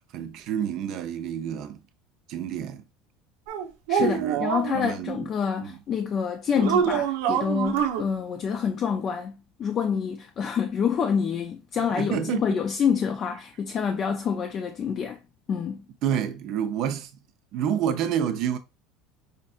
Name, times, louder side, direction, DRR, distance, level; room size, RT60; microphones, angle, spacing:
voice 1, 0.1-1.8 2.3-2.8 3.9-4.4 4.7-5.3 5.6-5.7 11.9-12.6 16.0-17.1 17.5-18.6, right 9 dB, 45° right, 0.6 m, -29 dB
sound 1, 3.5-4.8 6.6-8.0, right 9 dB, 85° right, 0.7 m, -25 dB
voice 2, 3.9-15.2 15.5-15.8, left 7 dB, 30° left, 0.4 m, -27 dB
5.1 x 2.6 x 2.4 m
cardioid pair, 160°, 0 cm